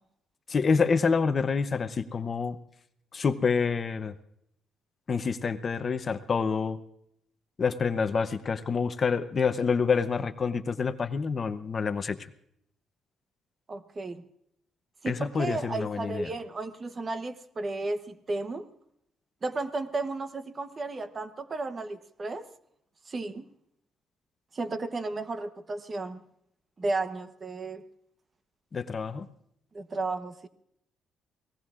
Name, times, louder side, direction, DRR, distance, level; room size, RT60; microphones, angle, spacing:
voice 1, 0.5-2.6 3.1-4.1 5.1-6.8 7.6-12.2 15.1-16.3 28.7-29.3, left 5 dB, 35° left, 10 dB, 0.8 m, -27 dB
voice 2, 13.7-14.3 15.0-18.7 19.4-22.5 23.1-23.4 24.5-26.2 26.8-27.8 29.7-30.5, right 3 dB, 30° right, 10 dB, 1.0 m, -33 dB
29.5 x 19.0 x 2.5 m, 0.74 s
cardioid pair, 110°, 0 cm